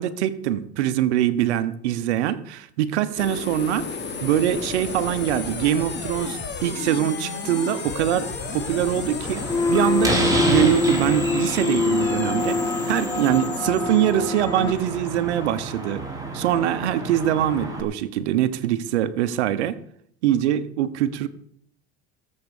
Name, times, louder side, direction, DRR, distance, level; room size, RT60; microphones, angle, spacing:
voice 1, 0.0-9.4 9.7-16.0 16.3-19.8 20.2-21.3, right 11 dB, 85° right, 14 dB, 1.1 m, -23 dB
sound 1, 3.2-15.1, left 4 dB, 30° left, 3.4 m, -33 dB
sound 2, 7.5-14.7, left 4 dB, 10° left, 0.5 m, -26 dB
Slam, 9.2-17.8, right 1 dB, 10° right, 6.3 m, -30 dB
17.5 x 7.6 x 7.1 m, 0.66 s
hypercardioid pair, 90°, 33 cm